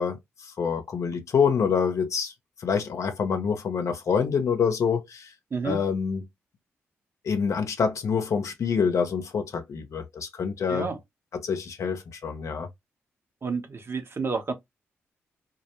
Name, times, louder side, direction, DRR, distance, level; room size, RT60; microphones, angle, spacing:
voice 1, 0.0-2.3 2.6-5.3 5.6-6.3 7.2-10.9 11.3-12.7, left 6 dB, 65° left, 0.6 m, -26 dB
voice 2, 13.4-14.5, right 4 dB, 45° right, 0.8 m, -30 dB
2.3 x 2.0 x 2.9 m
hypercardioid pair, 40°, 6 cm